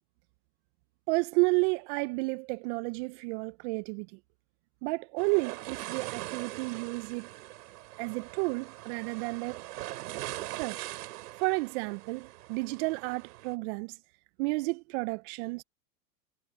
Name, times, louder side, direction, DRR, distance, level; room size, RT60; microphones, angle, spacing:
voice 1, 1.1-4.1 4.8-7.3 8.0-9.7 10.6-10.9 11.4-14.0 14.4-15.6, right 28 dB, 45° right, 0.7 m, -31 dB
sound 1, 5.2-13.5, right 17 dB, 65° right, 4.1 m, -42 dB
hypercardioid pair, 110°, 49 cm